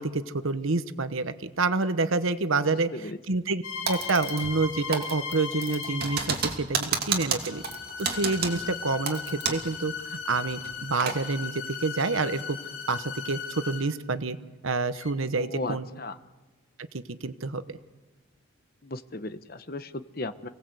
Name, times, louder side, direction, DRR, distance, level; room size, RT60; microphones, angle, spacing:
voice 1, 0.0-2.9 3.3-3.6 3.9-7.6 8.0-12.6 12.9-14.4 14.6-15.8 16.9-17.6, right 3 dB, 80° right, 12 dB, 1.1 m, -28 dB
sound 1, 3.6-6.4 7.4-14.0 14.9-15.1, left 6 dB, 85° left, 2.6 m, -37 dB
Typing, 3.9-4.7 4.9-9.7 10.0-10.1 10.6-11.2, right 6 dB, 50° right, 2.8 m, -31 dB
voice 2, 15.4-16.2 18.8-20.5, left 2 dB, 45° left, 10 dB, 1.1 m, -36 dB
29.5 x 18.5 x 8.0 m, 1.2 s
head